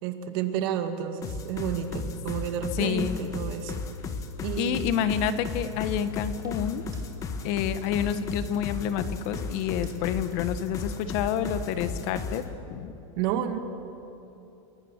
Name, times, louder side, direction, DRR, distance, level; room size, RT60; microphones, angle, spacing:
voice 1, 0.0-3.8 4.4-4.9 13.2-13.6, right 9 dB, 50° right, 7 dB, 2.2 m, -30 dB
sound 1, 1.2-12.5, left 4 dB, 20° left, 1.5 m, -35 dB
voice 2, 2.7-3.3 4.6-6.8 7.4-12.4 12.7-12.9, left 9 dB, 40° left, 11 dB, 1.3 m, -28 dB
sound 2, 5.6-6.1 6.4-7.1 7.4-7.5 7.9-8.1 8.5-9.0 9.3-10.0 10.3-10.4, right 5 dB, 25° right, 2.5 m, -48 dB
29.0 x 21.5 x 8.1 m, 2.9 s
supercardioid pair, 165°, 16 cm